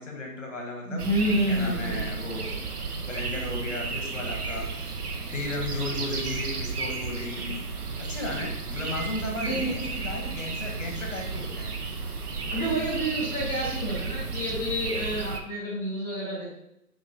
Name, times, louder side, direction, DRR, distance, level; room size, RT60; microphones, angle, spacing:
voice 1, 0.0-1.1 1.5-2.6 3.1-4.9 5.3-7.6 8.0-11.7, left 2 dB, 50° left, 1 dB, 0.9 m, -35 dB
voice 2, 0.9-2.0 9.4-9.7 12.5-16.5, right 1 dB, 5° left, -8 dB, 1.3 m, -29 dB
sound 1, 1.0-15.4, right 4 dB, 70° right, 0.7 m, -33 dB
3.5 x 3.0 x 2.6 m, 0.79 s
figure-of-eight pair, 170°, 47 cm